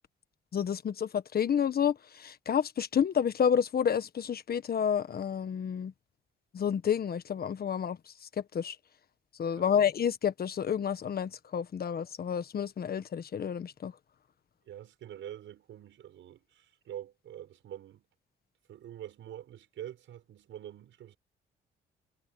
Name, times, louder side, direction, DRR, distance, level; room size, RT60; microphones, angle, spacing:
voice 1, 0.5-5.9 6.5-8.0 8.5-8.8 9.4-13.9, left 8 dB, 50° left, 1.4 m, -29 dB
voice 2, 9.5-9.8 14.7-18.1 18.7-21.2, right 11 dB, 75° right, 6.9 m, -45 dB
cardioid pair, 90°, 20 cm